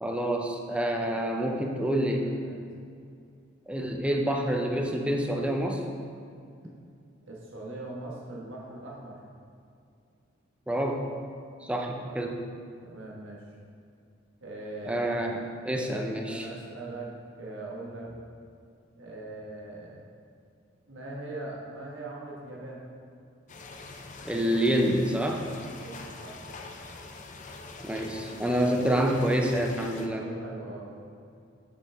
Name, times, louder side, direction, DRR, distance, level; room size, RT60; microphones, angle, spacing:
voice 1, 0.0-2.3 3.7-5.8 10.7-11.1 11.6-12.4 14.8-16.5 24.2-25.4 27.8-30.3, right 1 dB, 5° right, 1 dB, 0.5 m, -27 dB
voice 2, 1.1-1.6 2.2-2.6 7.2-9.2 11.6-12.1 12.8-13.4 14.4-15.1 15.8-16.0 16.2-18.1 19.0-20.0 20.9-22.8 25.7-26.4 30.0-31.0, right 2 dB, 70° right, -3 dB, 1.5 m, -41 dB
sound 1, 23.5-30.1, left 3 dB, 40° left, 0.6 m, -44 dB
7.2 x 7.1 x 3.5 m, 2.4 s
head